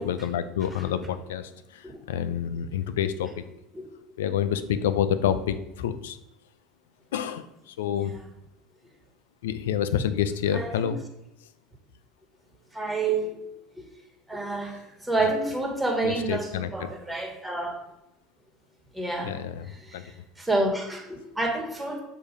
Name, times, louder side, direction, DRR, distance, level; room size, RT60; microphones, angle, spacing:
voice 1, 0.0-3.4 4.2-6.2 7.1-8.1 9.4-11.0 15.2-15.3 16.0-16.7 19.2-20.0, left 9 dB, 85° left, 12 dB, 0.4 m, -28 dB
voice 2, 10.5-10.9 12.7-13.5 14.3-17.8 18.9-22.0, right 2 dB, 10° right, 1 dB, 1.5 m, -29 dB
6.9 x 2.8 x 4.9 m, 0.88 s
hypercardioid pair, 90°, 0 cm